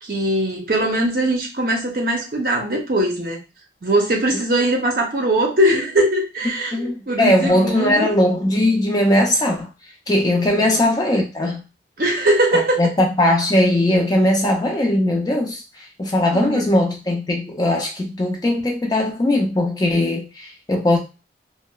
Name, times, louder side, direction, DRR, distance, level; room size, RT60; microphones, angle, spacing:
voice 1, 0.0-3.4 3.8-8.1 10.5-10.7 12.0-12.8 16.3-16.6, right 1 dB, 55° right, 0.6 m, -20 dB
voice 2, 6.7-9.7 10.1-11.6 12.5-21.0, left 1 dB, 20° left, 0.4 m, -19 dB
2.9 x 2.0 x 2.2 m
head